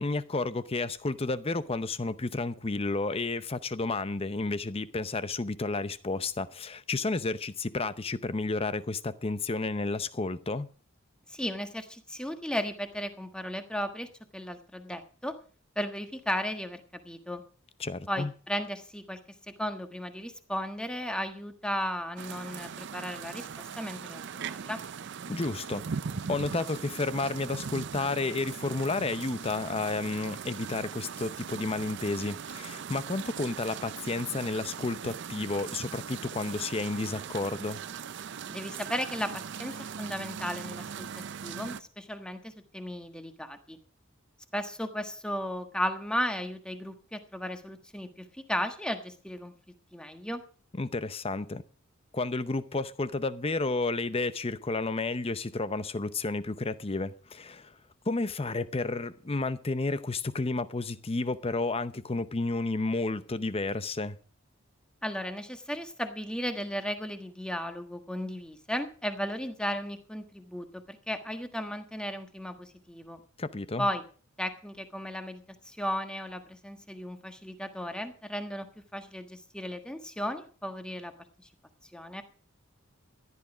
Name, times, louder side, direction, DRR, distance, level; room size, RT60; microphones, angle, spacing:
voice 1, 0.0-10.7 17.8-18.3 25.3-25.8 26.3-37.8 50.8-51.6 52.1-57.7 58.1-64.2 73.4-73.9, left 3 dB, 30° left, 0.7 m, -31 dB
voice 2, 11.3-15.4 15.7-17.4 18.1-19.2 19.6-23.5 23.8-24.8 38.5-41.1 41.4-43.8 44.5-49.5 49.9-50.4 65.0-73.2 73.8-74.0 74.4-81.1 81.4-81.5 81.9-82.2, equal, 5° left, 1.4 m, -35 dB
sound 1, 22.2-41.8, right 6 dB, 55° right, 0.5 m, -40 dB
14.5 x 11.0 x 5.0 m
head